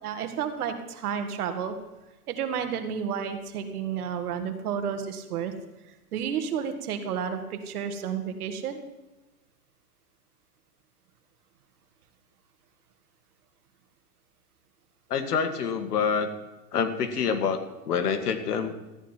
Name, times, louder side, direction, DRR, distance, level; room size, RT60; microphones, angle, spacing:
voice 1, 0.0-1.7 2.3-5.5 5.9-8.8, right 7 dB, 70° right, 7 dB, 1.9 m, -31 dB
voice 2, 15.1-16.3 16.7-18.7, left 6 dB, 80° left, 8 dB, 1.9 m, -27 dB
13.5 x 10.0 x 4.5 m, 1.1 s
hypercardioid pair, 140°, 46 cm